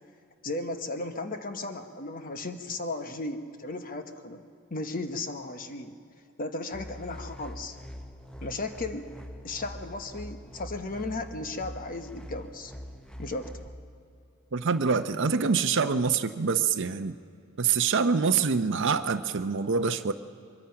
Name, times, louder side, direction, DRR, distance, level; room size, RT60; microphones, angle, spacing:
voice 1, 0.4-4.4 4.7-5.9 6.4-7.8 8.4-9.1 9.4-12.7 13.2-13.7, left 2 dB, 40° left, 7 dB, 1.1 m, -35 dB
sound 1, 6.7-13.7, equal, 5° left, 0.7 m, -43 dB
voice 2, 14.5-17.2 17.6-20.1, right 5 dB, 60° right, 7 dB, 0.7 m, -25 dB
23.0 x 22.5 x 5.8 m, 2.4 s
head